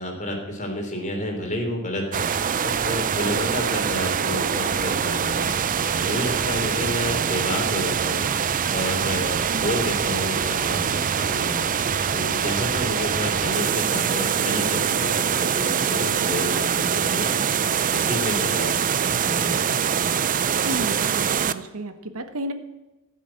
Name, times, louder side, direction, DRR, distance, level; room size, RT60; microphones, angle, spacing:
voice 1, 0.0-2.3 2.6-5.5 6.0-8.3 8.7-11.6 12.1-17.5 17.9-18.8 19.1-19.6, left 1 dB, 35° left, 1 dB, 3.6 m, -30 dB
sound 1, 2.1-21.5, right 7 dB, 40° right, 0.5 m, -24 dB
voice 2, 20.6-22.5, right 1 dB, 90° right, 8 dB, 1.4 m, -32 dB
16.0 x 7.5 x 9.0 m, 1.1 s
head